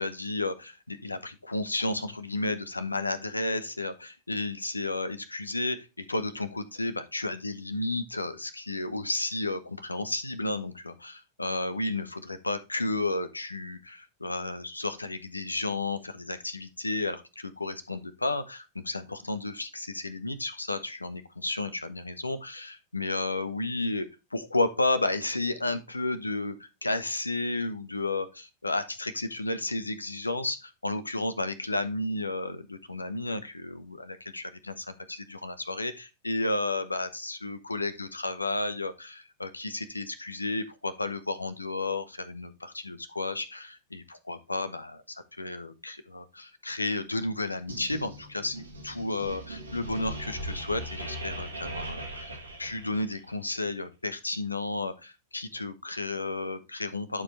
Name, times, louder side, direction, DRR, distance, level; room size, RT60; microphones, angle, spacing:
voice 1, 0.0-57.2, left 2 dB, 80° left, 12 dB, 0.9 m, -32 dB
sound 1, 47.7-53.3, right 1 dB, 80° right, 2.2 m, -39 dB
11.0 x 4.8 x 3.2 m, 0.27 s
figure-of-eight pair, 90°, 0 cm